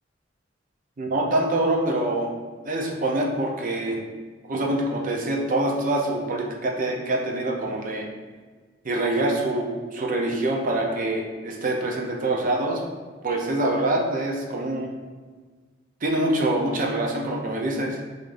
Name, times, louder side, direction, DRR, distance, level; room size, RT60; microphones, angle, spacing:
voice 1, 1.0-2.3 2.6-4.0 4.5-8.1 8.8-12.8 13.2-14.9 16.0-18.0, right 1 dB, 45° right, 0 dB, 0.5 m, -25 dB
4.7 x 2.6 x 2.5 m, 1.4 s
head